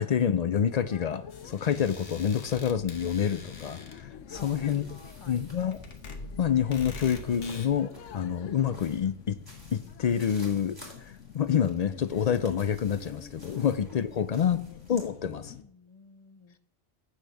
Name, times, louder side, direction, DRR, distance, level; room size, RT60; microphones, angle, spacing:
voice 1, 0.0-4.9 5.3-5.8 6.4-9.4 9.7-14.6 14.9-15.5, left 8 dB, 70° left, 13 dB, 0.3 m, -28 dB
sound 1, 0.7-15.6, left 9 dB, 85° left, 1.0 m, -48 dB
sound 2, 1.3-7.7, left 4 dB, 55° left, 1.2 m, -45 dB
voice 2, 4.3-5.4 13.5-13.7 14.2-14.6 15.5-16.6, left 4 dB, 30° left, 9 dB, 0.7 m, -53 dB
sound 3, 4.3-15.1, left 1 dB, 15° right, 2.7 m, -51 dB
8.2 x 6.3 x 6.9 m, 0.69 s
omnidirectional pair, 1.3 m